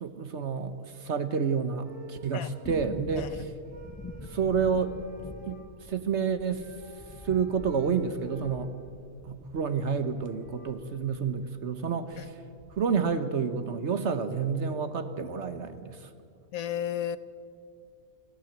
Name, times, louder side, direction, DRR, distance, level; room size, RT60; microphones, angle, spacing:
voice 1, 0.0-3.3 4.3-4.9 5.5-5.6 5.9-6.6 7.2-8.7 9.2-12.3 12.8-16.1, right 6 dB, 50° right, 11 dB, 1.1 m, -29 dB
sound 1, 1.8-3.2 3.6-5.7 6.6-9.1 9.8-9.9 10.0-10.7, right 4 dB, 75° right, 3.3 m, -52 dB
sound 2, 2.6-11.5 11.7-11.8 12.1-13.1 13.4-13.5, left 2 dB, 20° left, 0.4 m, -46 dB
voice 2, 16.5-17.2, left 10 dB, 65° left, 14 dB, 1.1 m, -33 dB
29.5 x 12.0 x 8.0 m, 2.4 s
omnidirectional pair, 1.7 m